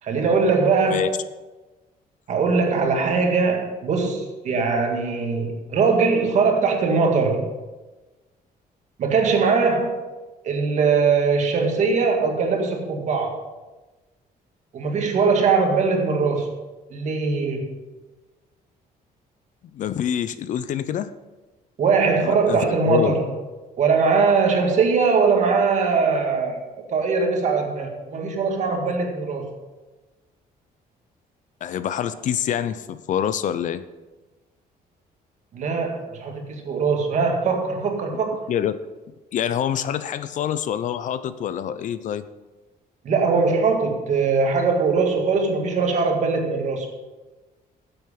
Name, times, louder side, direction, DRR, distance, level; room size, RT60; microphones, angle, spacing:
voice 1, 0.0-1.1 2.3-7.5 9.0-9.9 10.4-13.4 14.7-16.5 16.9-17.7 21.8-23.3 23.8-26.6 26.9-29.5 35.5-38.4 43.0-46.9, right 4 dB, 50° right, 2 dB, 1.9 m, -21 dB
voice 2, 19.7-21.1 22.2-23.1 31.6-33.8 38.5-38.8 39.3-42.2, left 9 dB, 55° left, 13 dB, 0.5 m, -26 dB
10.5 x 7.9 x 5.5 m, 1.2 s
cardioid pair, 165°, 16 cm